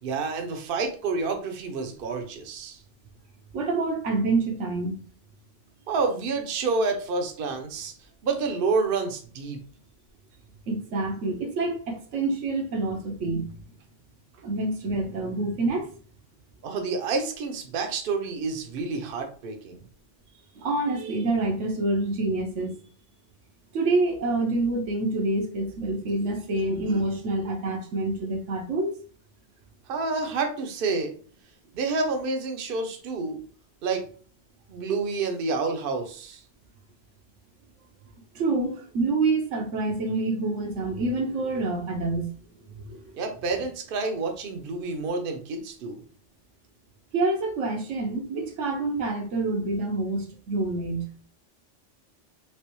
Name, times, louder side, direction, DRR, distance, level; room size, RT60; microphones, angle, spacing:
voice 1, 0.0-2.8 5.9-7.9 8.2-9.6 16.6-19.8 29.9-31.1 31.7-33.4 33.8-34.1 34.7-36.4 43.1-46.0, right 4 dB, 55° right, 0.8 m, -29 dB
voice 2, 3.5-5.0 10.7-13.5 14.4-15.9 20.5-22.8 23.7-28.9 38.3-42.3 42.7-43.2 47.1-51.1, right 2 dB, 85° right, 1.1 m, -27 dB
3.3 x 2.9 x 3.0 m
omnidirectional pair, 1.2 m